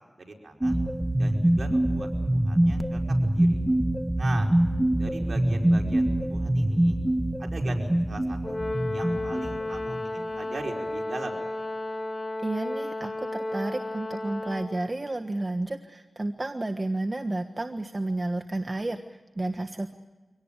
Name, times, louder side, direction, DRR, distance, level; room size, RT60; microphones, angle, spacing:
voice 1, 0.2-0.8 1.1-3.6 4.2-4.5 4.9-7.0 7.4-8.6 8.9-11.4, right 2 dB, 70° right, 1 dB, 5.0 m, -40 dB
sound 1, 0.6-10.2, right 1 dB, 20° right, 1.3 m, -25 dB
Brass instrument, 8.4-14.8, left 2 dB, 40° left, 4.3 m, -33 dB
voice 2, 12.4-19.9, right 2 dB, 40° right, 6 dB, 1.4 m, -31 dB
25.0 x 18.5 x 9.0 m, 1.3 s
cardioid pair, 50°, 0 cm